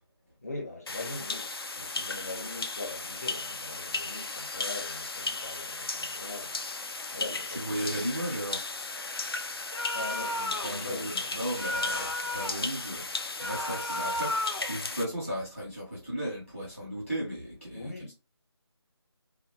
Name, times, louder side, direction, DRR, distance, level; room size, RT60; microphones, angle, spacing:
voice 1, 0.4-1.5 1.8-6.6 7.1-7.9 9.5-11.3 11.8-12.3 17.7-18.1, left 2 dB, 35° left, 0.8 m, -41 dB
sound 1, 0.9-15.0, left 3 dB, 60° left, 0.5 m, -36 dB
voice 2, 7.2-8.8 10.6-17.9, right 1 dB, 5° left, 0.6 m, -36 dB
sound 2, 9.7-10.8 11.5-12.7 13.4-14.7, left 1 dB, 85° left, 0.9 m, -33 dB
2.9 x 2.1 x 3.0 m
figure-of-eight pair, 170°, 14 cm